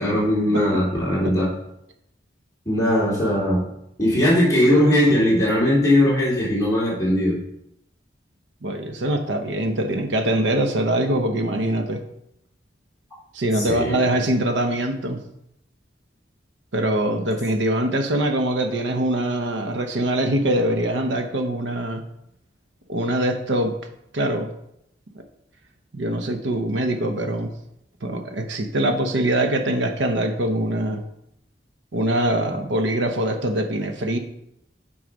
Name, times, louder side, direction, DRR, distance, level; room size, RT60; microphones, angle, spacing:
voice 1, 0.0-1.5 2.6-3.7 4.0-7.4 13.5-14.0, left 1 dB, 20° left, -6 dB, 2.8 m, -19 dB
voice 2, 8.6-12.0 13.3-15.2 16.7-22.0 22.9-23.7 24.1-24.5 25.1-25.2 25.9-27.5 28.0-31.0 31.9-34.2, right 1 dB, 85° right, 6 dB, 0.8 m, -23 dB
6.2 x 4.8 x 5.2 m, 0.79 s
head